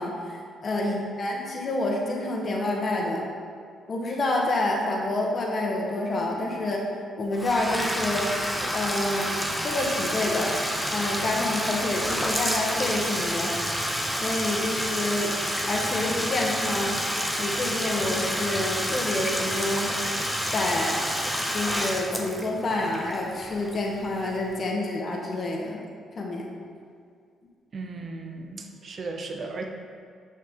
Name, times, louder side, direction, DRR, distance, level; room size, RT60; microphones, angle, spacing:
voice 1, 0.0-3.2 3.9-6.8 7.2-8.3 8.7-9.3 9.6-10.6 10.9-13.5 14.2-15.3 15.7-17.0 17.4-19.9 20.5-21.0 21.5-25.8 26.1-26.5, left 2 dB, 45° left, -1 dB, 1.0 m, -28 dB
voice 2, 0.8-1.1 27.7-29.6, right 3 dB, 45° right, 4 dB, 0.7 m, -35 dB
Bathtub (filling or washing), 7.3-24.1, equal, ahead, 0.7 m, -29 dB
6.2 x 5.6 x 3.6 m, 2.2 s
cardioid pair, 90°, 0 cm